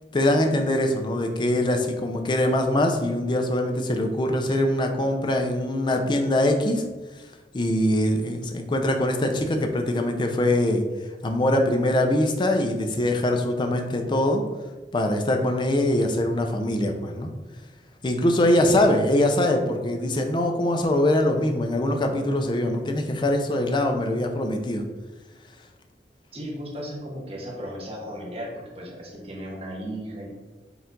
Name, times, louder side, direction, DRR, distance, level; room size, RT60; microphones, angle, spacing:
voice 1, 0.1-6.8 7.5-10.8 11.2-14.4 14.9-17.3 18.0-24.9, left 1 dB, 25° left, 4 dB, 0.4 m, -23 dB
voice 2, 18.3-18.7 26.3-30.3, equal, 35° right, -3 dB, 0.8 m, -36 dB
4.3 x 2.4 x 3.8 m, 1.2 s
head